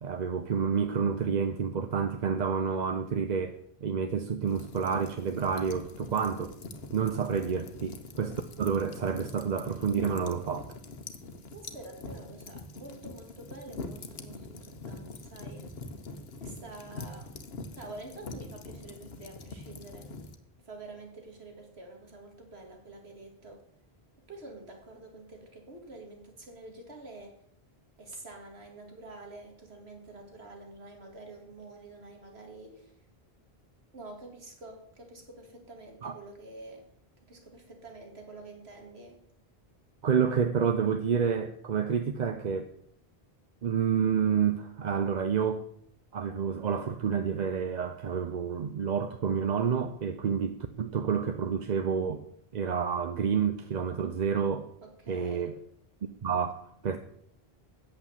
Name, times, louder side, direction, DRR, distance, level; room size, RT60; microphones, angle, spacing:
voice 1, 0.0-6.5 6.9-10.7 36.0-36.2 40.0-42.7 43.6-45.7 46.1-52.3 52.5-54.7 55.1-55.6 56.0-57.0, right 6 dB, 50° right, 8 dB, 0.7 m, -29 dB
sound 1, 4.5-20.4, left 3 dB, 75° left, 1.2 m, -44 dB
voice 2, 11.5-15.7 16.4-17.4 17.7-20.1 20.6-23.6 24.3-27.4 28.0-33.0 33.9-36.9 37.2-39.2 54.8-55.5, right 2 dB, 85° right, 3 dB, 2.5 m, -47 dB
8.6 x 7.8 x 7.1 m, 0.67 s
omnidirectional pair, 1.0 m